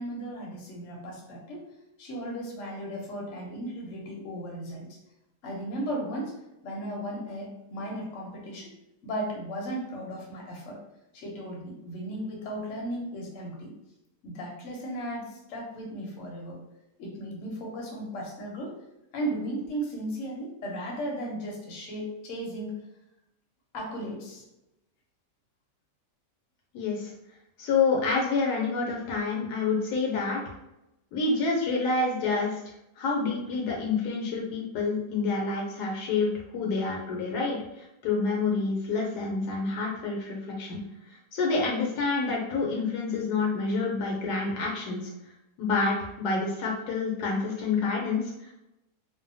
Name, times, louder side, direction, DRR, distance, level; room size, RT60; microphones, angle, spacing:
voice 1, 0.0-1.6 2.0-5.0 5.4-6.3 6.6-8.7 9.0-10.8 11.1-13.7 14.2-16.6 17.0-18.7 19.1-22.8 23.7-24.4, right 1 dB, 60° left, -2 dB, 0.9 m, -35 dB
voice 2, 26.7-27.1 27.6-30.4 31.1-32.6 33.0-45.1 45.6-48.5, left 4 dB, 80° left, -1 dB, 1.1 m, -28 dB
2.7 x 2.2 x 2.6 m, 0.88 s
omnidirectional pair, 1.8 m